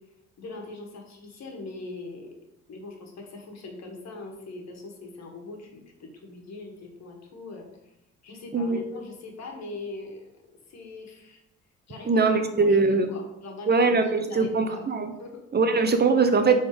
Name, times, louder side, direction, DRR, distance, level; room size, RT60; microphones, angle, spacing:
voice 1, 0.4-2.3 2.7-7.9 8.2-10.3 10.7-11.4 11.9-14.8 15.2-15.4, left 2 dB, 60° left, 2 dB, 1.8 m, -41 dB
voice 2, 12.1-13.1 13.7-15.1 15.5-16.6, right 4 dB, 35° right, 7 dB, 0.8 m, -21 dB
6.6 x 4.0 x 5.0 m, 0.86 s
cardioid pair, 90°, 30 cm